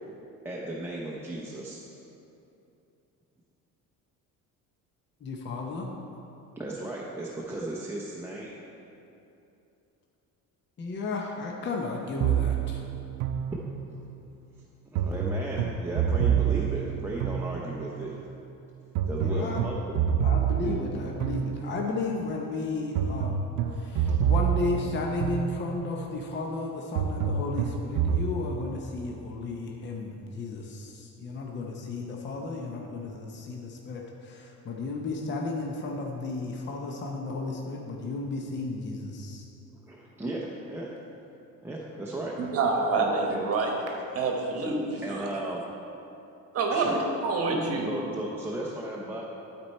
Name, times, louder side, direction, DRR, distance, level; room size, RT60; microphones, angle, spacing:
voice 1, 0.4-1.8 6.5-8.6 14.9-18.2 19.1-19.8 20.6-20.8 39.9-40.9 41.6-42.4 43.0-43.4 45.0-45.6 46.7-47.0 47.9-49.2, right 2 dB, 5° right, -5 dB, 0.6 m, -35 dB
voice 2, 5.2-5.9 10.8-12.9 19.2-19.6 20.2-23.4 23.7-39.4, left 3 dB, 35° left, 0 dB, 0.7 m, -34 dB
sound 1, 12.2-14.1 15.0-18.0 19.0-22.0 23.0-26.0 27.0-28.3, right 8 dB, 80° right, 0.5 m, -28 dB
voice 3, 42.4-43.7 44.1-45.3 46.5-47.9, right 3 dB, 45° right, 1 dB, 1.2 m, -27 dB
12.0 x 4.5 x 4.2 m, 2.8 s
cardioid pair, 140°, 33 cm